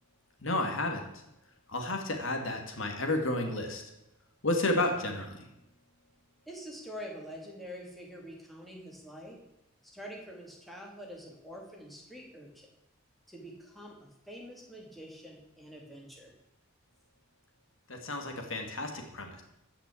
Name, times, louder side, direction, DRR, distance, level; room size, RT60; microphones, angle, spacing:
voice 1, 0.4-1.0 1.7-3.8 4.4-5.5 17.9-19.4, left 2 dB, 65° left, 4 dB, 2.1 m, -31 dB
voice 2, 6.5-9.4 9.9-12.7 13.3-16.3, equal, ahead, -2 dB, 2.6 m, -46 dB
14.5 x 6.0 x 8.5 m, 0.87 s
head